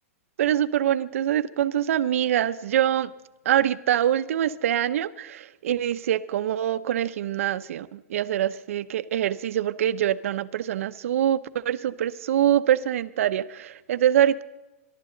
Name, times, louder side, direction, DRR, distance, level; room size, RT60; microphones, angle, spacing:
voice 1, 0.4-3.1 3.4-14.4, right 11 dB, 65° right, 13 dB, 0.7 m, -24 dB
22.5 x 12.0 x 3.9 m, 1.0 s
supercardioid pair, 170°, 8 cm